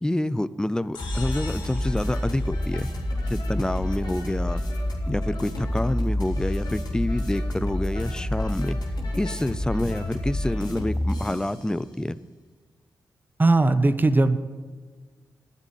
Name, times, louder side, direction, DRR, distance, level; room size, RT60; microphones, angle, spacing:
voice 1, 0.0-2.9 3.3-4.6 5.1-8.8 9.2-12.2, left 1 dB, 10° left, 16 dB, 0.5 m, -27 dB
sound 1, 0.9-3.5, left 4 dB, 85° left, 2.2 m, -44 dB
sound 2, 1.0-11.6, left 1 dB, 65° left, 3.4 m, -28 dB
voice 2, 13.4-14.4, right 2 dB, 25° right, 11 dB, 1.0 m, -19 dB
9.8 x 7.5 x 8.5 m, 1.5 s
supercardioid pair, 50°, 8 cm